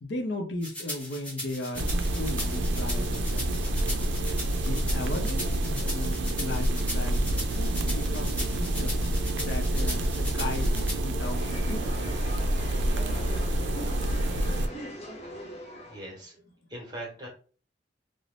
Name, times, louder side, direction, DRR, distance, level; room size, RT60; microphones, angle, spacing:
voice 1, 0.0-3.4 3.7-3.9 4.6-9.0 9.4-12.1, left 2 dB, 75° left, 0.6 m, -36 dB
sound 1, 0.6-11.0, equal, 10° left, 0.8 m, -38 dB
sound 2, 1.7-14.7, right 1 dB, 90° right, 0.4 m, -28 dB
sound 3, 11.2-16.1, equal, 40° left, 0.6 m, -41 dB
voice 2, 15.9-16.4 16.7-17.3, right 1 dB, 25° right, 1.0 m, -40 dB
2.5 x 2.0 x 3.2 m
head